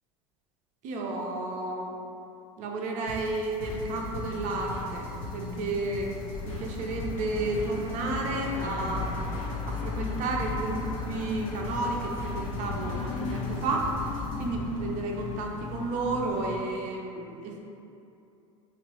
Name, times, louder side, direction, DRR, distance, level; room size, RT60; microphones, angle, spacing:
voice 1, 0.8-2.0 2.6-6.1 6.5-9.3 9.7-17.6, right 2 dB, 45° right, 0 dB, 0.5 m, -32 dB
sound 1, 3.1-14.4, left 3 dB, 70° left, 0.9 m, -43 dB
sound 2, 3.7-16.6, left 4 dB, 40° left, 0.4 m, -36 dB
3.1 x 2.9 x 3.0 m, 2.7 s
hypercardioid pair, 80°, 17 cm